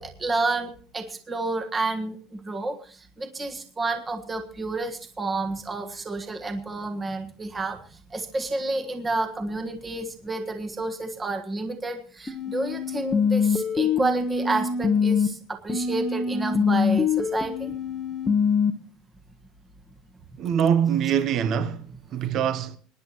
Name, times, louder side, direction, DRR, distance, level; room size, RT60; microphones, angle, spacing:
voice 1, 0.0-7.8 8.1-17.7, right 2 dB, 15° right, 1.5 m, -30 dB
sound 1, 12.3-15.3 15.7-18.7, left 5 dB, 15° left, 1.2 m, -24 dB
voice 2, 20.4-22.8, right 8 dB, 35° right, 0.9 m, -24 dB
26.0 x 10.5 x 3.0 m
cardioid pair, 165°, 0 cm